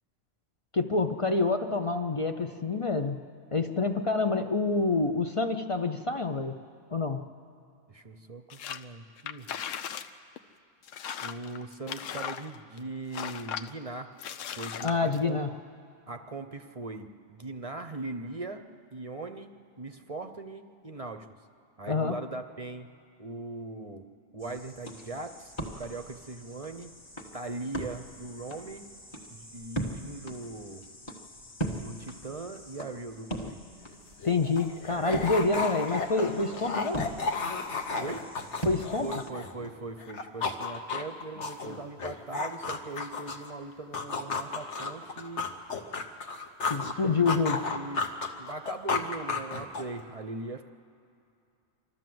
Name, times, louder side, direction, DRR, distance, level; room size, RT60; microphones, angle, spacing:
voice 1, 0.7-3.2 3.5-6.6 6.9-7.2 14.8-15.5 21.9-22.2 34.2-37.1 38.7-39.1 46.7-47.6, left 3 dB, 40° left, 6 dB, 0.4 m, -27 dB
voice 2, 7.9-9.5 11.2-14.2 14.5-15.5 16.1-18.6 18.9-21.4 21.8-22.9 23.2-24.0 24.3-26.9 27.3-28.9 29.3-30.8 31.7-33.6 38.0-38.3 39.0-45.5 46.8-48.0 48.4-50.6, right 3 dB, 35° right, 7 dB, 0.6 m, -40 dB
sound 1, 8.5-8.8 9.2-10.1 10.4-10.5 10.8-12.8 13.1-13.7 14.2-15.2, left 9 dB, 80° left, 1.0 m, -37 dB
sound 2, 24.4-39.3, right 1 dB, 20° left, 1.5 m, -41 dB
sound 3, 33.9-34.0 34.2-39.7 40.0-43.5 43.9-46.9 47.3-50.0, left 4 dB, 65° left, 1.4 m, -33 dB
27.0 x 12.5 x 7.7 m, 2.5 s
omnidirectional pair, 1.3 m